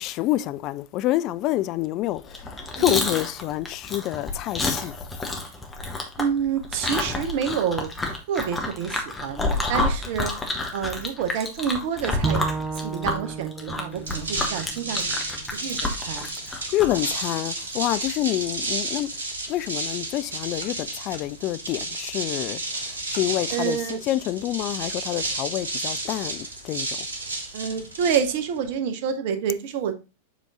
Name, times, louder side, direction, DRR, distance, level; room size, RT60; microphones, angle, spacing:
voice 1, 0.0-4.9 16.5-19.1 19.5-22.6 23.1-27.0, left 15 dB, 40° left, 0.4 m, -27 dB
Chewing mastication, 2.2-17.1, left 2 dB, 10° left, 1.3 m, -29 dB
voice 2, 6.2-10.3 10.7-12.4 12.7-15.1 15.6-16.3 23.5-24.0 27.5-29.9, right 7 dB, 50° right, 0.9 m, -28 dB
Bowed string instrument, 12.2-15.5, right 4 dB, 10° right, 0.6 m, -32 dB
sound 1, 13.9-28.7, right 2 dB, 70° right, 1.2 m, -32 dB
7.3 x 3.8 x 3.7 m
figure-of-eight pair, 90°, 0 cm